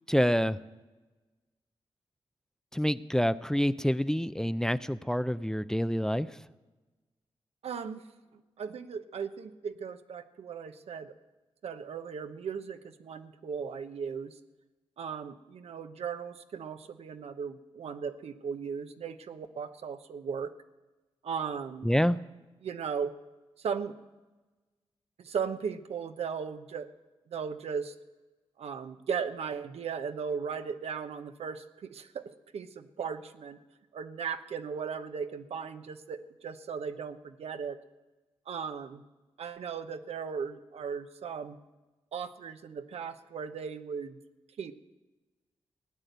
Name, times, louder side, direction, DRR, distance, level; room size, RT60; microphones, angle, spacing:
voice 1, 0.1-0.6 2.7-6.3 21.8-22.2, equal, 5° left, 14 dB, 0.5 m, -27 dB
voice 2, 7.6-8.0 8.3-11.1 11.6-14.3 15.0-20.5 21.2-21.9 22.6-23.2 23.6-23.9 25.2-26.9 27.3-27.9 28.6-33.6 33.9-37.8 38.5-39.0 39.4-41.6 42.1-44.2 44.6-44.7, right 6 dB, 75° right, 9 dB, 0.9 m, -37 dB
17.0 x 9.1 x 8.1 m, 1.2 s
cardioid pair, 55°, 10 cm